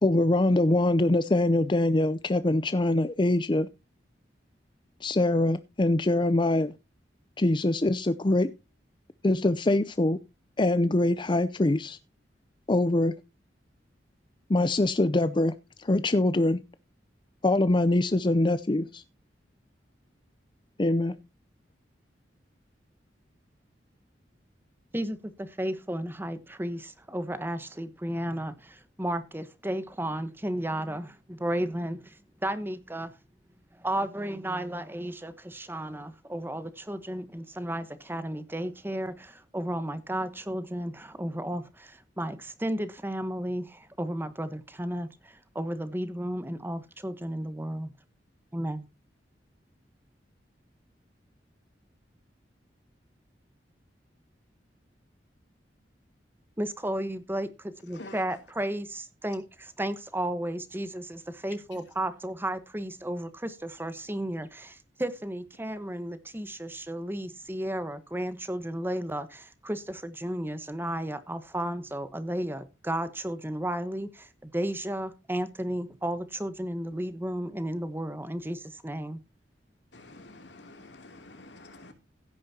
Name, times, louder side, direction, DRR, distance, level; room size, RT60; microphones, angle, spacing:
voice 1, 0.0-3.7 5.0-6.7 7.4-8.5 9.2-10.2 10.6-12.0 12.7-13.1 14.5-16.6 17.4-19.0 20.8-21.1, left 2 dB, 25° left, 0.5 m, -24 dB
voice 2, 24.9-33.1 33.7-47.9 48.5-48.9 56.6-79.2, right 1 dB, 10° right, 1.1 m, -33 dB
voice 3, 79.9-81.9, left 2 dB, 80° left, 2.9 m, -47 dB
16.0 x 9.6 x 2.8 m
head